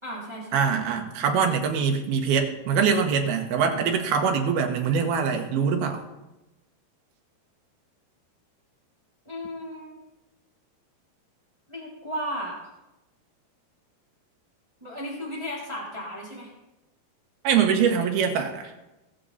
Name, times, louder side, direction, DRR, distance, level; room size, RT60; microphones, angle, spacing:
voice 1, 0.0-0.7 9.2-10.0 11.7-12.7 14.8-16.5, equal, 10° right, -5 dB, 2.7 m, -35 dB
voice 2, 0.5-6.0 17.4-18.7, right 6 dB, 75° right, 4 dB, 3.1 m, -23 dB
20.5 x 7.7 x 4.2 m, 0.97 s
omnidirectional pair, 4.6 m